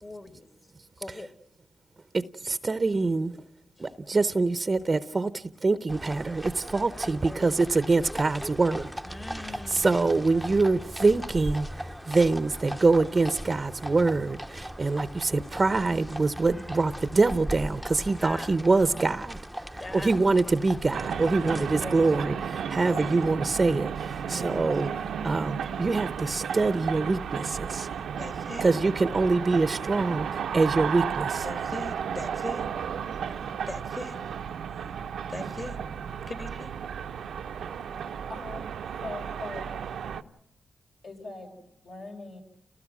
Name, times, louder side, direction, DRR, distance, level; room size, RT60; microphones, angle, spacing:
voice 1, 0.0-0.5 1.0-1.3 3.8-3.9 9.0-10.0 18.2-18.5 19.7-20.2 21.3-22.0 22.7-23.2 24.2-24.6 28.2-28.7 31.4-32.7 33.7-34.2 35.3-35.8 36.3-36.7, left 2 dB, 30° left, 2.1 m, -40 dB
voice 2, 2.1-3.4 3.8-8.9 9.5-24.9 25.2-27.9 28.6-31.5, right 3 dB, 35° right, 0.8 m, -25 dB
sound 1, 5.9-21.8, right 1 dB, ahead, 0.9 m, -38 dB
sound 2, 20.9-40.2, right 7 dB, 85° right, 0.8 m, -33 dB
voice 3, 38.3-39.9 41.0-42.4, left 2 dB, 65° left, 6.3 m, -41 dB
30.0 x 18.5 x 6.1 m
cardioid pair, 65°, 0 cm